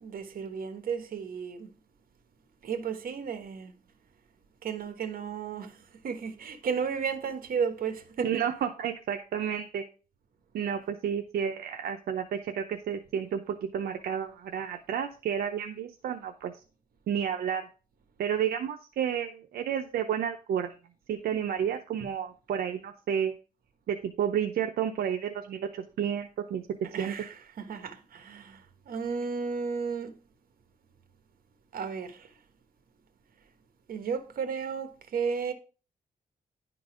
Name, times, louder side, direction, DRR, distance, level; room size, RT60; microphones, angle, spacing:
voice 1, 0.0-1.7 2.6-3.7 4.6-5.7 6.0-8.4 26.9-28.6 28.9-30.1 31.7-32.2 33.9-35.5, right 6 dB, 70° right, 1.1 m, -33 dB
voice 2, 8.2-9.8 10.5-16.5 17.1-17.6 18.2-20.7 21.1-23.3 23.9-26.6 27.0-27.1, right 8 dB, 90° right, 0.7 m, -31 dB
10.5 x 3.9 x 4.8 m
cardioid pair, 115°, 15 cm